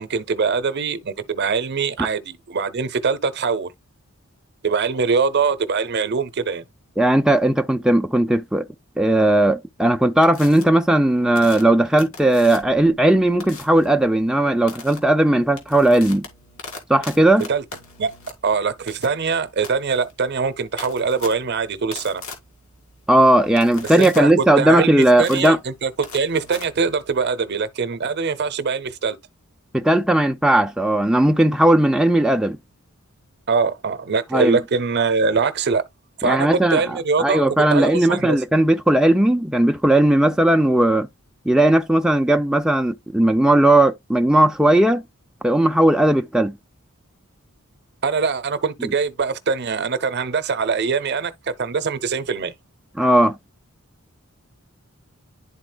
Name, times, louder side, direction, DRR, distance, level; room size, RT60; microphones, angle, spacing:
voice 1, 0.0-3.7 4.6-6.6 17.5-17.6 18.0-18.1 18.4-22.2 24.0-29.2 33.5-35.8 36.2-38.4 48.0-52.5, right 5 dB, 50° right, 0.7 m, -23 dB
voice 2, 7.0-8.6 9.0-16.3 16.9-17.4 23.1-25.6 29.7-32.6 34.3-34.6 36.2-41.1 41.5-45.0 45.4-46.5 53.0-53.4, right 1 dB, 5° right, 0.4 m, -17 dB
sound 1, 10.2-10.6 11.3-12.8 13.4-13.9 14.7-15.0 15.4-27.3, left 4 dB, 75° left, 2.2 m, -39 dB
11.0 x 4.2 x 2.2 m
head